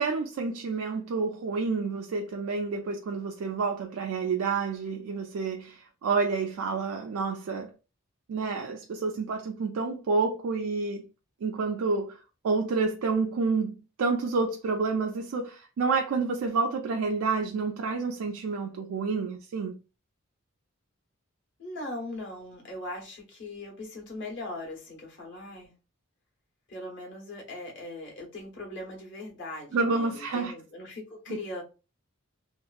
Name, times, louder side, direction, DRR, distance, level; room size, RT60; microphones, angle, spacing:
voice 1, 0.0-7.7 8.3-11.1 11.4-19.8 29.7-30.5 31.3-31.4, right 4 dB, 80° right, 0.4 m, -29 dB
voice 2, 21.6-25.7 26.7-31.6, left 2 dB, 60° left, 1.1 m, -40 dB
2.9 x 2.3 x 2.4 m
head